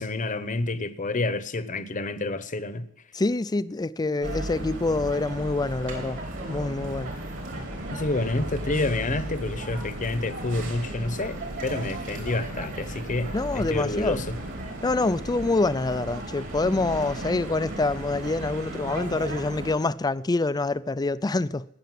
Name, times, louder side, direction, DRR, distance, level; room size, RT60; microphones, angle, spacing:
voice 1, 0.0-2.8 7.9-14.4, left 2 dB, 35° left, 0.9 m, -29 dB
voice 2, 3.1-6.2 6.5-7.1 13.3-14.2 14.8-21.7, left 3 dB, 20° left, 0.4 m, -26 dB
sound 1, 4.2-19.7, right 1 dB, 60° right, 4.2 m, -35 dB
18.5 x 6.9 x 7.6 m
head